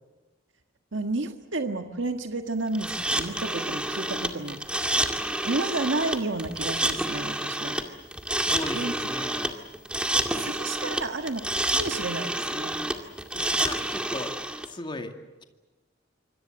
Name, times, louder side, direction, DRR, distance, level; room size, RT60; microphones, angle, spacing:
voice 1, 0.9-4.6 5.4-7.8 8.7-8.9 10.3-11.4 11.7-12.8, right 2 dB, 75° right, 6 dB, 1.6 m, -31 dB
sound 1, 2.7-14.7, right 1 dB, 5° right, 2.2 m, -29 dB
voice 2, 8.4-9.5 13.3-14.4 14.7-15.2, left 2 dB, 25° left, 5 dB, 2.3 m, -37 dB
26.5 x 25.0 x 7.7 m, 1.1 s
head